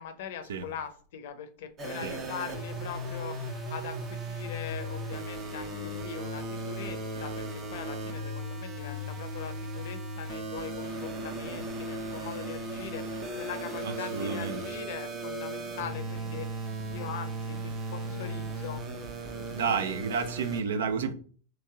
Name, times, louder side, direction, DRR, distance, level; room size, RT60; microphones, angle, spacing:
voice 1, 0.0-16.6 16.9-18.8, left 8 dB, 65° left, 0.5 m, -41 dB
sound 1, 1.8-20.6, right 1 dB, 35° right, 0.8 m, -36 dB
voice 2, 13.8-14.6 16.9-17.0 19.2-21.1, right 6 dB, 75° right, 0.4 m, -31 dB
2.9 x 2.8 x 2.3 m
hypercardioid pair, 100°, 0 cm